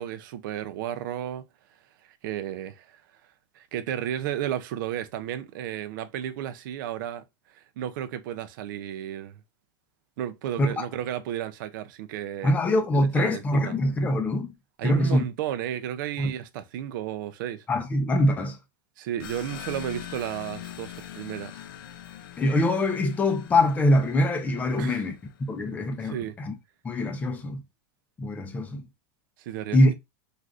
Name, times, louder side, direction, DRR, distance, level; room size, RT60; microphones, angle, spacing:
voice 1, 0.0-1.4 2.2-3.0 3.6-7.2 7.6-9.3 10.2-12.5 12.9-13.7 14.8-17.6 19.0-21.6 24.8-25.0 26.0-26.4 29.4-29.9, right 11 dB, 65° right, 0.4 m, -33 dB
voice 2, 12.4-14.5 14.8-15.2 16.2-16.3 17.7-18.6 22.4-26.5 26.8-27.6 28.2-28.9 29.7-29.9, left 1 dB, 15° left, 0.5 m, -24 dB
sound 1, 19.2-25.5, left 10 dB, 70° left, 0.5 m, -43 dB
3.3 x 2.4 x 2.4 m
supercardioid pair, 145°, 11 cm